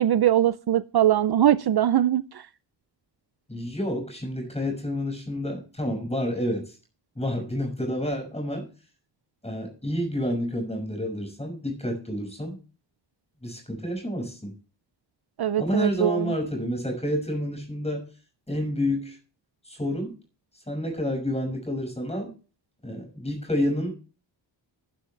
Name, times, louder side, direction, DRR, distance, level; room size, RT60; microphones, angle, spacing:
voice 1, 0.0-2.5 15.4-16.3, right 11 dB, 55° right, 0.6 m, -22 dB
voice 2, 3.5-6.8 7.1-8.7 9.4-12.6 13.4-14.5 15.6-18.1 18.5-19.2 19.6-20.1 20.7-22.3 22.8-23.9, equal, 15° left, 6.1 m, -29 dB
11.5 x 11.5 x 3.3 m
wide cardioid pair, 125°, 46 cm